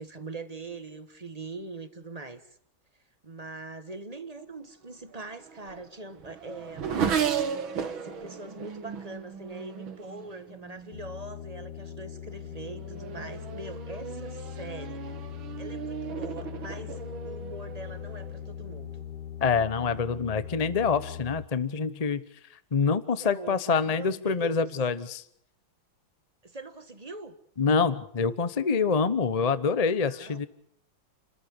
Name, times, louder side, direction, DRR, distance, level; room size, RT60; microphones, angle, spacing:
voice 1, 0.0-2.5 3.2-6.9 7.8-15.1 15.6-19.0 23.2-24.6 26.4-27.3 30.1-30.5, right 2 dB, 20° right, 10 dB, 1.2 m, -42 dB
Race car auto racing / Accelerating revving vroom, 5.1-11.0 11.8-12.2 12.6-18.5, right 7 dB, 75° right, 2.4 m, -35 dB
sound 1, 10.9-21.5, left 10 dB, 55° left, 2.0 m, -40 dB
voice 2, 19.4-22.2 22.7-25.2 27.6-30.5, left 5 dB, 35° left, 14 dB, 0.6 m, -26 dB
29.5 x 13.5 x 8.7 m, 0.67 s
omnidirectional pair, 2.2 m